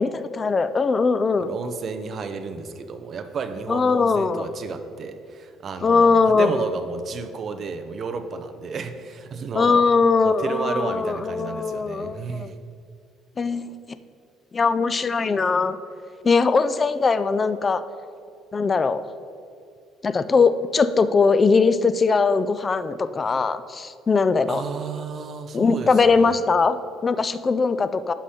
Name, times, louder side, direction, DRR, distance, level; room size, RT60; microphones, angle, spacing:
voice 1, 0.0-1.5 3.7-4.5 5.8-6.6 9.5-12.5 13.4-13.8 14.5-15.8 16.2-17.8 18.5-19.0 20.0-24.6 25.5-28.1, left 4 dB, 20° left, 13 dB, 0.3 m, -20 dB
voice 2, 1.4-9.9 10.2-12.6 24.5-26.4, right 5 dB, 35° right, 8 dB, 0.6 m, -32 dB
11.5 x 4.9 x 4.2 m, 2.4 s
cardioid pair, 155°, 0 cm